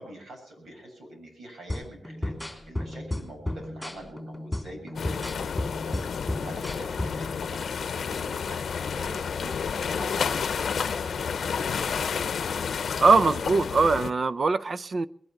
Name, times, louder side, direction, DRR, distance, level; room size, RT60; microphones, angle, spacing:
voice 1, 0.0-11.9, right 1 dB, 75° right, 2 dB, 7.1 m, -44 dB
sound 1, 1.7-7.3, left 1 dB, 5° left, 3.2 m, -34 dB
sound 2, 5.0-14.1, left 6 dB, 80° left, 0.7 m, -30 dB
voice 2, 13.0-15.1, right 4 dB, 55° right, 13 dB, 0.6 m, -22 dB
21.0 x 11.0 x 5.8 m, 0.65 s
wide cardioid pair, 85°, 0 cm